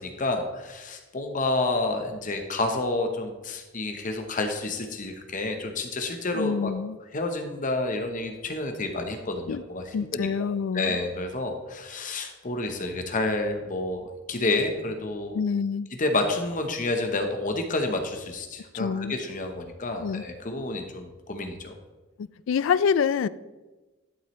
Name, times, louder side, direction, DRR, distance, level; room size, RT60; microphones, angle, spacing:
voice 1, 0.0-6.7 7.1-10.3 10.7-15.4 16.0-21.7, left 2 dB, 40° left, 5 dB, 0.9 m, -29 dB
voice 2, 6.3-7.0 9.5-9.6 9.9-11.0 15.3-15.9 18.7-19.2 20.0-20.2 22.5-23.3, left 6 dB, 65° left, 17 dB, 0.3 m, -26 dB
11.0 x 7.4 x 3.1 m, 1.2 s
head